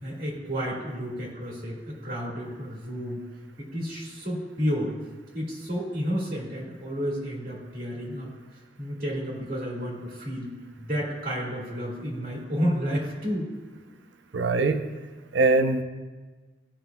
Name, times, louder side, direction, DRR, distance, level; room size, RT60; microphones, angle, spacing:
voice 1, 0.0-3.2 3.6-4.9 5.3-8.3 8.8-10.5 10.8-13.5, equal, 50° right, -4 dB, 1.8 m, -31 dB
voice 2, 14.3-14.8 15.3-15.8, right 3 dB, 75° right, 8 dB, 0.6 m, -22 dB
15.0 x 5.6 x 2.3 m, 1.3 s
head